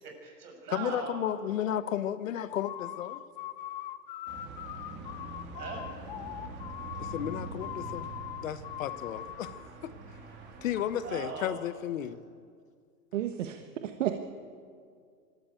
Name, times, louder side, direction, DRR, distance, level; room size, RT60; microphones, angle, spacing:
voice 1, 0.0-1.3 5.5-5.9 11.0-11.6, right 5 dB, 65° right, 7.3 m, -39 dB
voice 2, 0.7-3.2 7.0-8.1 8.4-9.5 9.8-9.9 10.6-12.2, left 10 dB, 50° left, 1.0 m, -33 dB
sound 1, 2.5-9.7, left 13 dB, 30° left, 0.7 m, -41 dB
sound 2, 4.3-11.4, right 3 dB, 20° right, 3.1 m, -44 dB
voice 3, 13.1-14.2, right 11 dB, 50° right, 1.3 m, -32 dB
25.0 x 13.5 x 9.2 m
hypercardioid pair, 155°, 49 cm